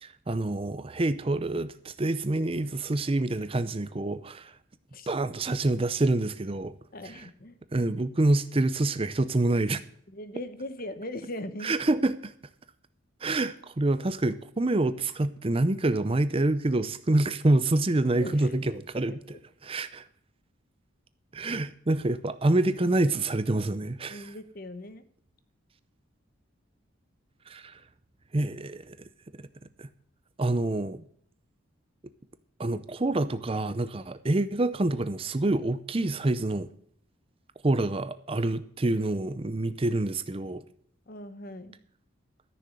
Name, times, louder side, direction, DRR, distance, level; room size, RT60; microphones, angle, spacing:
voice 1, 0.0-4.5 5.1-6.7 7.0-7.3 7.7-9.8 11.6-12.3 13.2-19.4 19.6-20.1 21.3-24.3 27.5-27.8 28.3-29.0 29.8-29.9 30.4-31.0 32.6-36.7 37.6-40.6, right 2 dB, 25° right, 0.6 m, -27 dB
voice 2, 6.9-7.6 10.1-11.7 18.2-18.6 24.1-25.0 41.1-41.8, left 1 dB, 45° left, 1.0 m, -39 dB
13.5 x 6.7 x 7.6 m
head